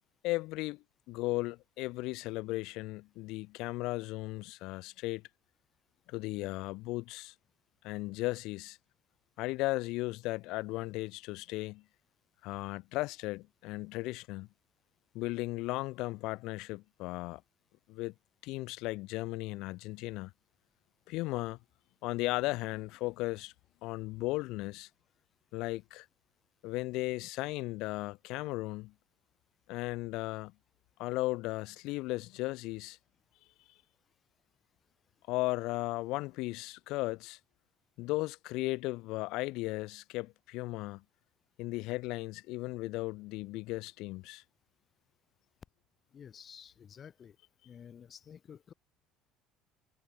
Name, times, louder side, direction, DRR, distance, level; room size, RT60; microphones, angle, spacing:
voice 1, 0.2-5.2 6.1-7.3 7.8-8.8 9.4-11.8 12.4-14.5 15.1-17.4 17.9-18.1 18.4-20.3 21.1-21.6 22.0-23.5 23.8-24.9 25.5-26.1 26.6-28.9 29.7-30.5 31.0-33.0 35.3-37.4 38.0-41.0 41.6-44.4, left 21 dB, 70° left, 0.8 m, -36 dB
voice 2, 46.1-47.4 47.6-48.7, left 8 dB, 35° left, 2.7 m, -51 dB
cardioid pair, 125°, 0 cm